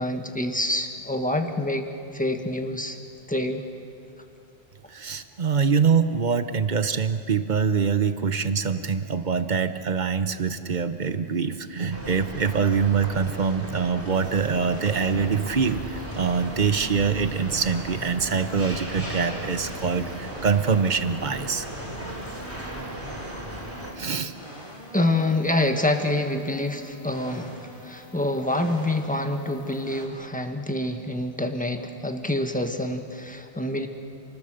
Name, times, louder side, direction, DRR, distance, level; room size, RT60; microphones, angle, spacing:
voice 1, 0.0-1.9 2.1-3.0 3.3-3.6 24.9-33.9, left 1 dB, 5° left, 5 dB, 1.5 m, -26 dB
voice 2, 4.9-21.7 24.0-24.3, right 6 dB, 45° right, 10 dB, 1.1 m, -24 dB
sound 1, 11.9-23.9, right 1 dB, 75° right, 4.6 m, -36 dB
sound 2, 14.1-30.1, equal, 30° left, 3.7 m, -44 dB
28.5 x 20.5 x 6.7 m, 2.6 s
omnidirectional pair, 1.1 m